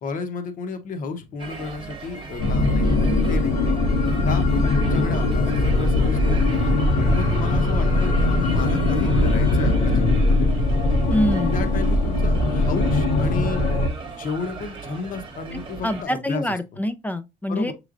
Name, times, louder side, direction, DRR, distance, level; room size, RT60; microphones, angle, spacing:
voice 1, 0.0-3.7 4.2-4.4 4.8-6.4 6.9-10.5 11.5-13.6 14.1-16.4 17.5-17.7, left 4 dB, 55° left, 0.9 m, -32 dB
sound 1, 1.4-16.0, right 4 dB, 30° right, 1.1 m, -38 dB
sound 2, 2.4-13.9, left 2 dB, 90° left, 1.0 m, -20 dB
voice 2, 11.1-11.6 15.5-17.7, equal, 10° left, 0.4 m, -25 dB
6.1 x 3.2 x 2.4 m
cardioid pair, 110°, 17 cm